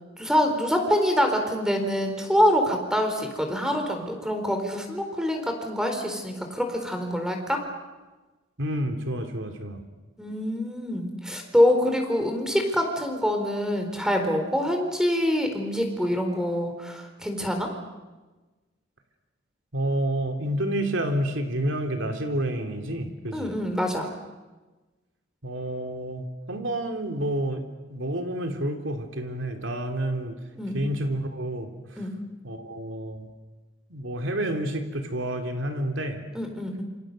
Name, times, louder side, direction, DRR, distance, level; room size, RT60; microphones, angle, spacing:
voice 1, 0.2-7.6 10.2-17.7 23.3-24.1 30.6-30.8 32.0-32.1 36.3-36.8, equal, 5° right, 4 dB, 4.3 m, -25 dB
voice 2, 8.6-9.8 19.7-23.5 25.4-27.6 27.9-30.3 30.7-31.7 32.4-33.3 33.9-36.2, right 1 dB, 70° right, 4 dB, 3.4 m, -29 dB
28.0 x 26.0 x 6.8 m, 1.2 s
head